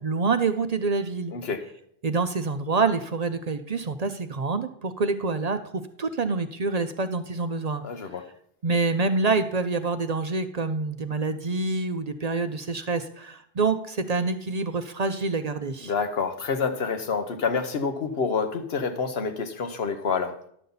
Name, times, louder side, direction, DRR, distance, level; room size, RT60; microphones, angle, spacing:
voice 1, 0.0-1.3 2.0-7.8 8.6-15.9, right 4 dB, 45° right, 0.6 m, -26 dB
voice 2, 1.3-1.7 7.8-8.2 15.9-20.4, left 5 dB, 80° left, 1.2 m, -28 dB
11.0 x 6.9 x 3.9 m
omnidirectional pair, 1.0 m